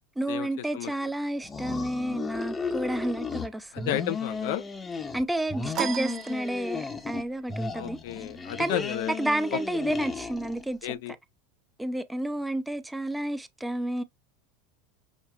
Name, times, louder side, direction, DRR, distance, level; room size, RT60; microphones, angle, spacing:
voice 1, 0.2-3.9 5.1-8.0 8.6-10.9 11.8-14.0, right 1 dB, 5° right, 0.6 m, -30 dB
sound 1, 1.4-3.5 3.8-5.2 5.5-7.2 7.5-10.7, left 4 dB, 20° left, 0.8 m, -35 dB
voice 2, 3.7-4.6 7.7-9.1 9.5-9.6 10.8-11.1, left 13 dB, 70° left, 0.5 m, -32 dB
sound 2, 5.7-7.1, right 10 dB, 45° right, 0.7 m, -35 dB
5.8 x 2.2 x 2.2 m
hypercardioid pair, 95°, 0 cm